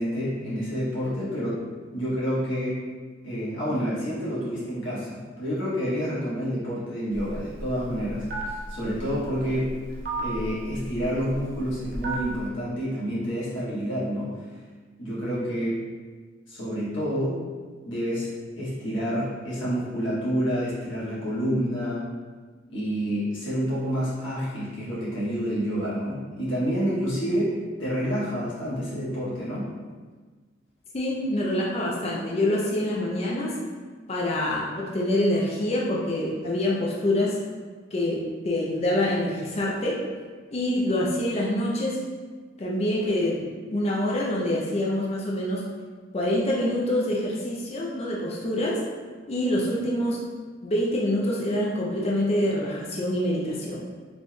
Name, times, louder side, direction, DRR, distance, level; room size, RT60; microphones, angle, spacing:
voice 1, 0.0-1.6 1.9-2.8 3.2-9.7 10.2-14.3 15.0-15.8 16.5-17.3 17.8-22.0 22.7-27.5 27.8-29.7, equal, 65° left, -9 dB, 1.4 m, -28 dB
Telephone, 7.1-12.5, right 2 dB, 50° right, 0.6 m, -35 dB
voice 2, 30.9-33.5 34.1-37.4 37.9-40.0 40.5-42.0 42.6-45.6 46.1-48.8 49.3-50.2 50.6-53.9, left 1 dB, 30° left, -4 dB, 0.4 m, -26 dB
4.2 x 3.1 x 2.2 m, 1.5 s
head